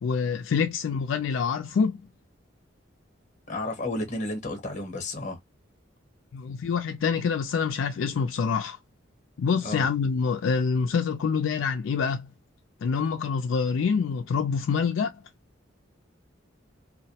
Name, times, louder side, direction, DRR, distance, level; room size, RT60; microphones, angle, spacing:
voice 1, 0.0-2.0 6.3-8.8 9.4-12.3 12.8-15.1, left 5 dB, 80° left, 0.4 m, -26 dB
voice 2, 3.5-5.4 9.6-9.9, left 2 dB, 40° left, 0.8 m, -32 dB
2.2 x 2.0 x 2.7 m
head